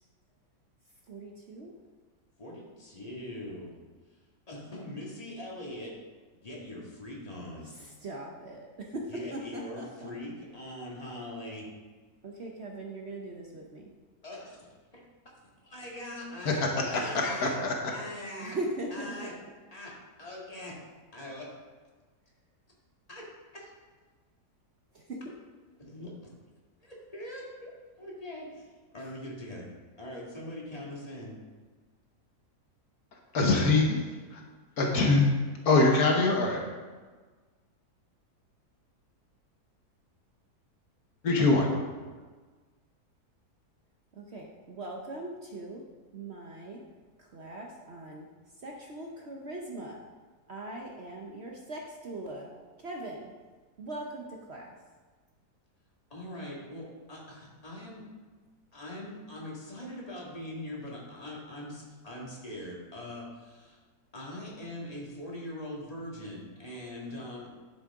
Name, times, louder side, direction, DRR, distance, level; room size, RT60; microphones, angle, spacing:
voice 1, 1.1-1.7 7.7-10.1 12.2-13.9 18.4-19.1 24.9-25.3 44.2-45.8 46.1-46.8 47.2-48.3 48.6-50.0 50.5-52.5 52.8-53.3 53.8-54.8, right 1 dB, 50° right, -1 dB, 1.0 m, -40 dB
voice 2, 2.4-3.8 4.5-5.9 6.4-7.7 9.1-11.7 14.2-14.7 14.9-15.0 15.6-17.6 17.9-18.6 18.9-19.3 19.7-20.8 21.1-21.5 23.1-23.3 23.5-23.7 25.8-26.3 26.8-27.7 28.0-29.7 30.0-31.4 56.1-58.0 58.7-63.8 64.1-67.5, left 1 dB, 25° left, -4 dB, 2.0 m, -42 dB
voice 3, 16.4-17.7 33.3-34.0 34.3-34.4 34.8-35.3 35.6-36.6 41.2-41.7, left 3 dB, 70° left, 0 dB, 1.7 m, -24 dB
11.5 x 6.7 x 3.6 m, 1.4 s
omnidirectional pair, 1.7 m